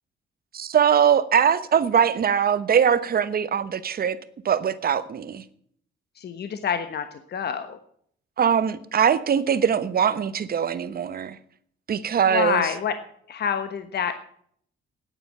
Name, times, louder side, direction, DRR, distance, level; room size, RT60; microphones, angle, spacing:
voice 1, 0.5-4.2 4.4-5.4 8.4-11.4 11.9-12.7, right 8 dB, 50° right, 1.1 m, -22 dB
voice 2, 6.2-7.8 12.3-12.9 13.3-14.2, left 7 dB, 55° left, 1.3 m, -27 dB
9.8 x 9.1 x 9.9 m
cardioid pair, 90°, 20 cm